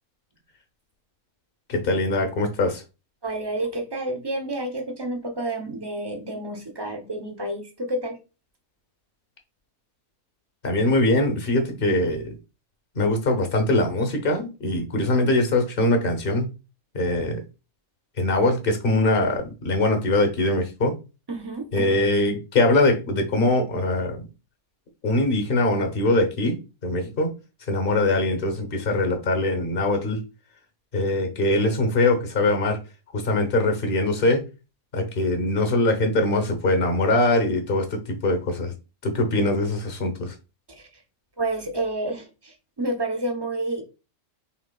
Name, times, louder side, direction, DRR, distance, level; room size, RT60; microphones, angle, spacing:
voice 1, 1.7-2.8 10.6-12.4 12.9-16.5 16.9-17.4 18.2-20.9 21.7-24.3 25.0-27.3 27.7-30.2 30.9-32.8 33.1-34.4 34.9-38.7 39.0-40.3, left 2 dB, 40° left, 6 dB, 1.1 m, -22 dB
voice 2, 3.2-8.2 21.3-21.9 40.7-41.0 41.4-43.8, right 2 dB, 20° right, 3 dB, 0.7 m, -30 dB
5.8 x 3.5 x 2.3 m, 0.29 s
omnidirectional pair, 1.6 m